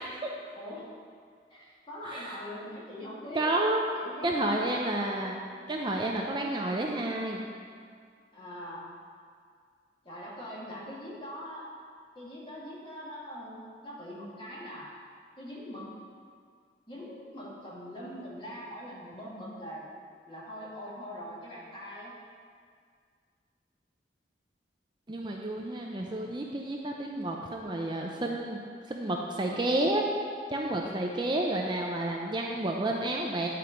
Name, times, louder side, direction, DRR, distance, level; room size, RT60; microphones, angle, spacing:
voice 1, 0.6-0.9 1.5-3.6 4.0-5.1 8.3-8.9 10.0-11.7 12.2-14.9 15.4-15.9 16.9-19.8 20.3-22.1 30.8-31.3, equal, 30° left, -6 dB, 2.1 m, -42 dB
voice 2, 2.1-2.4 3.3-3.8 4.2-5.4 5.7-7.5 25.1-28.6 28.9-30.0 30.5-33.5, right 1 dB, 25° right, 0 dB, 0.5 m, -30 dB
10.5 x 4.5 x 5.1 m, 2.1 s
head